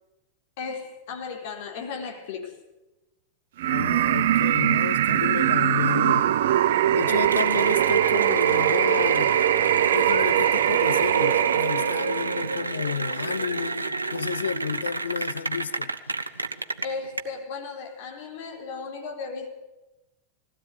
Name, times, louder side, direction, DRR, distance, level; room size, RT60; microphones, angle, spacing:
voice 1, 0.6-2.5 16.8-19.5, left 5 dB, 50° left, 4.3 m, -35 dB
sound 1, 3.6-12.6, right 12 dB, 55° right, 0.8 m, -22 dB
voice 2, 3.7-6.3 6.9-9.3 9.9-15.9, left 7 dB, 70° left, 0.7 m, -31 dB
Cheering / Applause, 7.2-17.2, right 3 dB, 80° right, 1.2 m, -30 dB
21.0 x 16.5 x 9.6 m
figure-of-eight pair, 90°, 0 cm